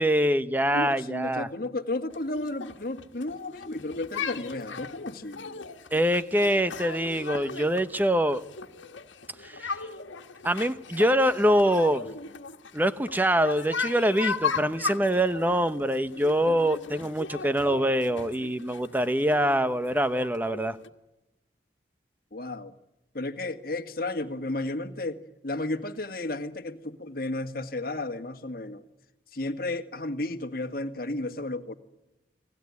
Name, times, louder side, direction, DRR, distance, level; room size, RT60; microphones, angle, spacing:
voice 1, 0.0-1.5 5.9-8.4 9.4-9.7 10.4-12.1 12.7-20.8, equal, 10° right, 12 dB, 0.9 m, -24 dB
voice 2, 0.7-5.7 22.3-22.7 23.1-28.8 29.3-31.7, left 2 dB, 50° left, 7 dB, 1.8 m, -33 dB
sound 1, 2.1-20.9, left 5 dB, 85° left, 1.6 m, -37 dB
29.5 x 20.0 x 9.6 m, 1.0 s
head